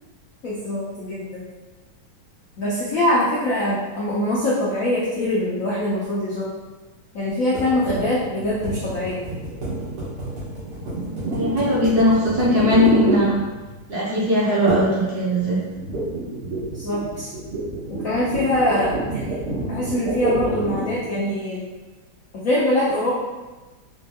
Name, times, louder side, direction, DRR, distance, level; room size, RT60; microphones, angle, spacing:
voice 1, 0.4-1.5 2.6-6.5 7.1-9.2 16.7-17.3 18.0-19.3 19.7-21.6 22.3-23.1, left 1 dB, 80° left, -7 dB, 0.7 m, -23 dB
sound 1, 7.5-13.9 14.7-15.0 15.3-21.0, right 2 dB, 85° right, 2.0 m, -28 dB
voice 2, 11.3-13.3 13.9-15.6, left 1 dB, 65° right, -7 dB, 1.0 m, -19 dB
4.3 x 2.2 x 2.8 m, 1.2 s
omnidirectional pair, 2.3 m